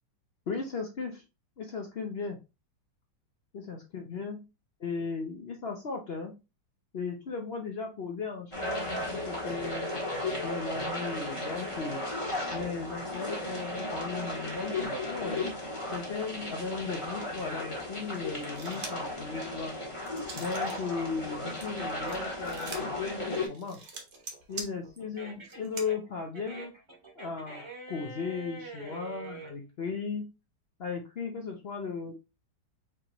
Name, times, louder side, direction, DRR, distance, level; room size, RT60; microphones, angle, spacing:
voice 1, 0.5-1.2 1.6-2.4 3.5-4.5 4.8-6.3 6.9-9.9 10.4-12.1 12.5-15.5 15.9-19.7 20.4-23.8 24.5-26.7 27.1-30.3 30.8-32.1, left 5 dB, 60° left, 2 dB, 0.6 m, -36 dB
sound 1, 8.5-23.5, left 1 dB, 20° left, 1.4 m, -35 dB
sound 2, 18.4-19.1 19.6-20.8 21.1-25.9, right 3 dB, 55° right, 1.4 m, -44 dB
sound 3, 18.9-22.4 22.8-29.5, right 3 dB, 15° right, 1.6 m, -47 dB
4.6 x 3.7 x 2.9 m, 0.27 s
omnidirectional pair, 1.9 m